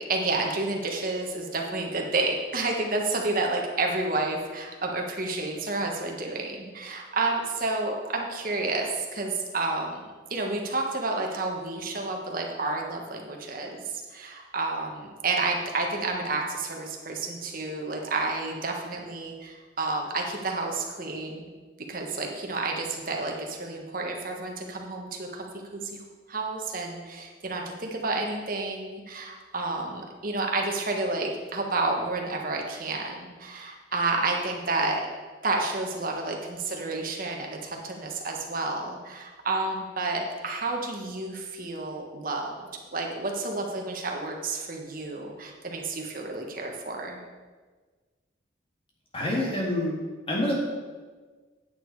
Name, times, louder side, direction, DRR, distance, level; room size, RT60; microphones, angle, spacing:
voice 1, 0.0-21.5 21.9-26.0 26.3-35.1 35.4-42.5 42.9-47.2, right 3 dB, 45° right, 1 dB, 1.4 m, -30 dB
voice 2, 49.1-50.0 50.3-50.6, left 1 dB, 30° left, -3 dB, 2.3 m, -26 dB
9.1 x 8.8 x 4.8 m, 1.4 s
head